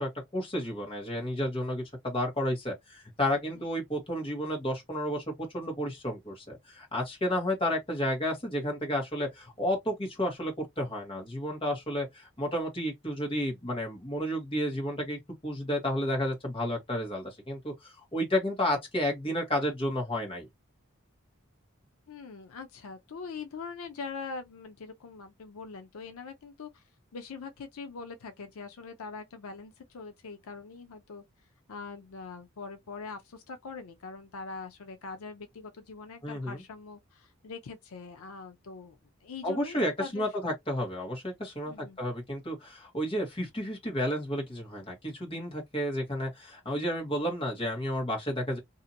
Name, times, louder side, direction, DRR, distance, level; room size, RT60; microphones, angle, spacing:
voice 1, 0.0-20.5 36.2-36.6 39.4-41.7 42.0-48.6, equal, 25° left, 1.2 m, -31 dB
voice 2, 22.1-26.8 27.1-31.2 31.7-40.5 41.7-42.0, left 4 dB, 80° left, 0.5 m, -43 dB
2.7 x 2.5 x 2.6 m
head